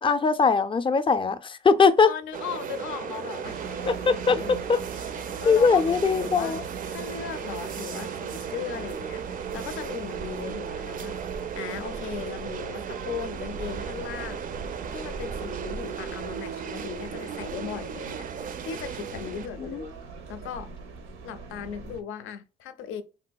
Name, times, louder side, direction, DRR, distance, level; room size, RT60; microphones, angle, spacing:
voice 1, 0.0-2.1 3.9-4.8 5.5-6.6 19.6-19.8, left 5 dB, 25° left, 0.4 m, -21 dB
voice 2, 2.1-4.7 5.4-6.6 6.9-9.2 9.5-14.4 14.9-18.3 18.7-20.0 20.3-20.7 21.2-23.0, left 8 dB, 85° left, 0.5 m, -37 dB
sound 1, 2.3-19.5, right 7 dB, 45° right, 0.4 m, -36 dB
sound 2, 3.4-22.0, right 4 dB, 85° right, 0.6 m, -41 dB
3.6 x 2.6 x 2.2 m
cardioid pair, 90°, 20 cm